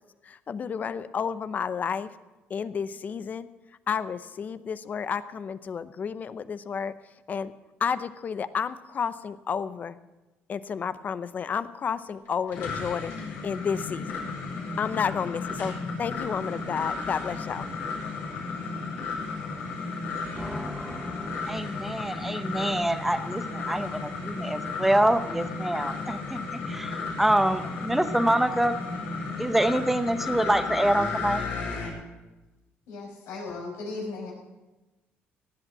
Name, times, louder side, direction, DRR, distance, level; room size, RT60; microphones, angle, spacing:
voice 1, 0.2-2.1 2.5-3.5 3.9-6.9 7.3-7.5 7.8-10.0 10.5-13.1 13.4-14.2 14.8-17.7, left 6 dB, 40° left, 14 dB, 0.7 m, -31 dB
sound 1, 12.2-31.9, left 4 dB, 70° left, 5.1 m, -34 dB
voice 2, 20.4-28.8 29.4-31.4, right 1 dB, 5° right, 10 dB, 0.9 m, -26 dB
voice 3, 32.9-34.3, left 3 dB, 85° left, -2 dB, 5.6 m, -36 dB
17.0 x 8.1 x 7.5 m, 1.1 s
cardioid pair, 115°, 4 cm